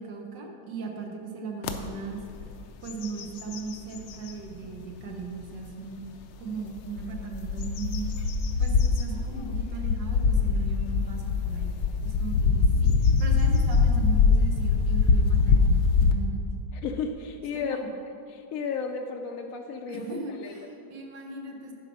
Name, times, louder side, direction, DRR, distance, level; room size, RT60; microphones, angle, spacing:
voice 1, 0.0-2.2 2.8-6.0 6.4-8.1 8.6-11.7 12.0-16.4 17.5-17.9 19.9-21.7, right 4 dB, 80° right, 2 dB, 1.7 m, -37 dB
sound 1, 1.6-1.8 2.3-2.5 2.9-4.4 5.0-5.1 6.8-16.1, left 4 dB, 90° left, 1.3 m, -23 dB
voice 2, 16.8-17.8 18.3-20.5, left 6 dB, 70° left, 3 dB, 0.8 m, -33 dB
10.5 x 4.7 x 6.1 m, 2.5 s
omnidirectional pair, 1.9 m